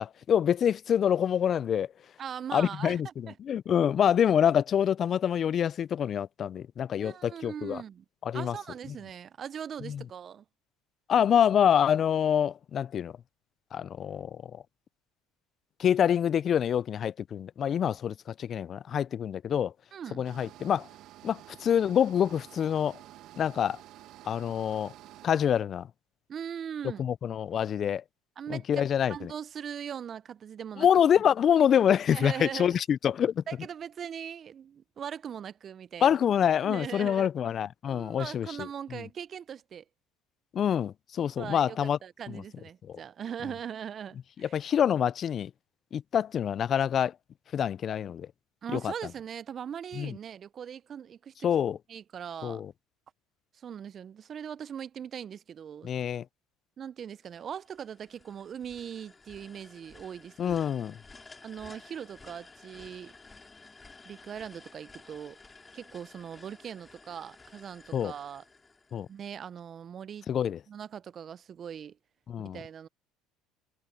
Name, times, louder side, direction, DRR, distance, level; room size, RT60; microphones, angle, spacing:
voice 1, 0.0-1.9 2.5-7.8 8.2-8.6 9.8-10.0 11.1-13.1 13.7-14.5 15.8-19.7 20.2-20.9 21.2-23.0 23.4-23.8 24.2-24.9 25.2-25.9 27.0-28.0 28.5-29.3 30.8-33.4 36.0-39.0 40.5-42.0 42.3-42.4 42.9-43.0 44.4-45.5 45.9-47.1 47.5-48.3 48.7-48.9 50.0-50.2 51.4-51.8 52.4-52.7 55.8-56.2 60.4-61.0 67.9-68.1 68.9-69.1 70.3-70.6 72.3-72.6, left 9 dB, 45° left, 0.5 m, -26 dB
voice 2, 2.2-3.3 7.0-8.0 8.3-10.4 19.9-20.2 26.3-27.0 28.4-30.9 32.1-32.8 33.5-36.2 36.6-37.3 37.8-39.8 41.4-44.6 48.6-51.5 51.9-52.6 53.5-55.9 56.8-60.6 61.4-63.1 64.0-65.4 65.7-68.4 69.1-70.3 70.7-72.0 72.4-72.9, right 8 dB, 45° right, 0.5 m, -40 dB
sound 1, 20.2-25.3, right 14 dB, 60° right, 1.6 m, -50 dB
sound 2, 57.3-69.4, left 3 dB, 20° left, 5.1 m, -53 dB
hypercardioid pair, 75°, 0 cm